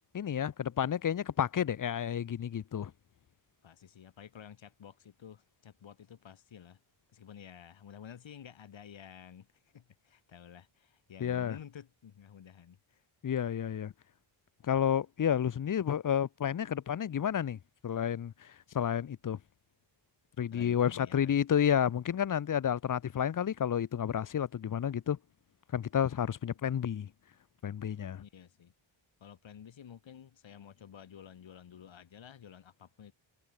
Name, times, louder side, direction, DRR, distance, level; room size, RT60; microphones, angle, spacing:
voice 1, 0.1-2.9 11.2-11.5 13.2-13.9 14.6-19.4 20.4-25.2 25.7-27.1 27.6-28.2, left 9 dB, 40° left, 0.7 m, -31 dB
voice 2, 3.6-6.8 7.1-13.0 20.5-21.4 26.5-26.7 28.2-28.7 29.2-33.1, left 8 dB, 70° left, 2.9 m, -52 dB
wide cardioid pair, 145°, 48 cm